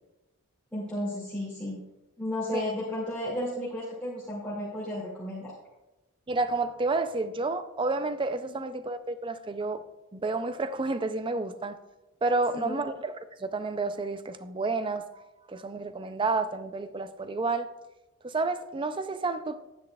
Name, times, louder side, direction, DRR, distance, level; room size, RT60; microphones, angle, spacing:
voice 1, 0.7-1.8 2.2-5.5 8.4-8.6 12.5-12.8, left 1 dB, 5° left, 2.2 m, -33 dB
voice 2, 6.3-9.8 10.1-11.8 12.2-17.7 18.2-19.6, right 3 dB, 25° right, 0.4 m, -30 dB
10.5 x 9.8 x 2.3 m
head